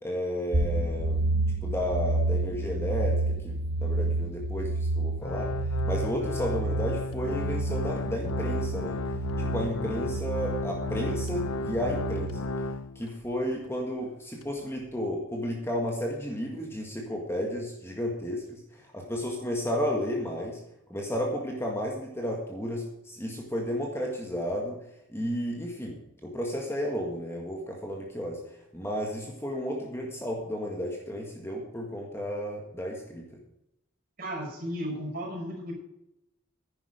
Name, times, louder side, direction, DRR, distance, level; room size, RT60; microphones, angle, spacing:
voice 1, 0.0-1.2 1.6-5.5 5.8-9.0 9.4-12.5 13.0-20.6 20.9-24.8 25.1-28.4 28.7-33.2, equal, 10° left, 0 dB, 1.7 m, -33 dB
sound 1, 0.5-12.4, right 2 dB, 65° right, 1.2 m, -30 dB
Organ, 5.2-13.2 13.6-13.7 14.4-14.5, left 2 dB, 85° left, 0.7 m, -34 dB
voice 2, 34.2-35.7, equal, 45° right, 0 dB, 5.6 m, -34 dB
11.0 x 10.0 x 5.1 m, 0.84 s
head